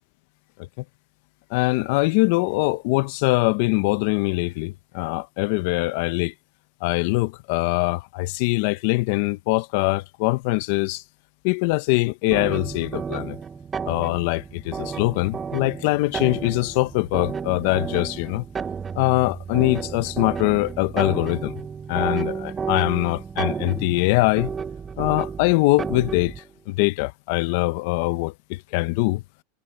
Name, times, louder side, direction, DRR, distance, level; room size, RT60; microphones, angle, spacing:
voice 1, 1.5-6.3 6.8-11.0 11.4-13.4 13.8-18.4 18.9-21.5 21.9-24.5 25.0-26.3 26.7-29.2, left 22 dB, 60° left, 0.9 m, -23 dB
sound 1, 12.3-26.4, right 6 dB, 20° right, 0.5 m, -32 dB
supercardioid pair, 125°, 0 cm